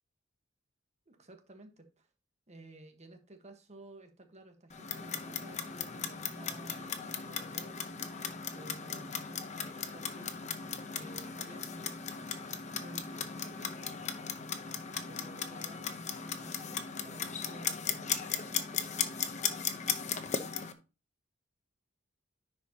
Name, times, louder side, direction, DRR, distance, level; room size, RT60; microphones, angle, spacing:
voice 1, 1.1-2.1 2.5-7.8 8.5-10.4 10.9-11.9 12.7-14.0 15.1-18.5, right 2 dB, 35° right, 5 dB, 1.3 m, -54 dB
Clock, 4.7-20.7, left 6 dB, 35° left, 0.8 m, -37 dB
10.0 x 4.9 x 2.8 m, 0.31 s
head